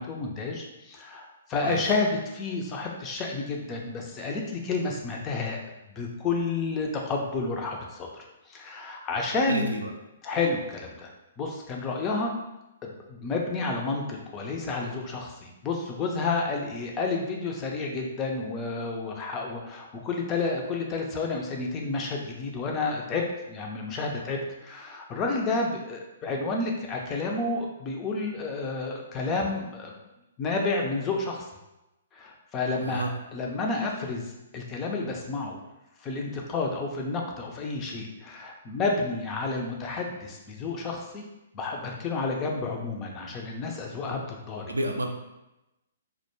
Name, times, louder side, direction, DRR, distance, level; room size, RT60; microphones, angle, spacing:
voice 1, 0.0-5.6 6.0-8.1 8.5-9.7 10.2-12.3 12.8-29.9 30.4-31.5 32.1-33.0 33.3-35.6 36.0-41.2 41.5-44.6, left 3 dB, 25° left, 0 dB, 0.4 m, -30 dB
voice 2, 9.5-9.9 32.8-33.1 44.7-45.1, right 1 dB, 80° right, 3 dB, 0.4 m, -30 dB
2.1 x 2.1 x 3.0 m, 0.95 s
figure-of-eight pair, 120°, 0 cm